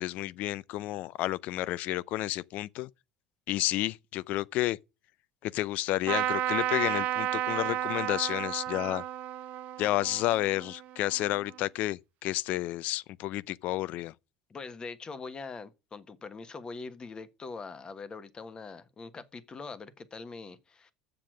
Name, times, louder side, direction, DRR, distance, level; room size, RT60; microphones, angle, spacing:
voice 1, 0.0-2.9 3.5-4.8 5.4-9.0 9.8-14.1, left 16 dB, 60° left, 0.4 m, -31 dB
Trumpet, 6.1-11.6, right 13 dB, 60° right, 0.7 m, -33 dB
voice 2, 14.5-20.9, left 4 dB, 30° left, 1.3 m, -43 dB
7.4 x 6.8 x 6.2 m
hypercardioid pair, 75°, 3 cm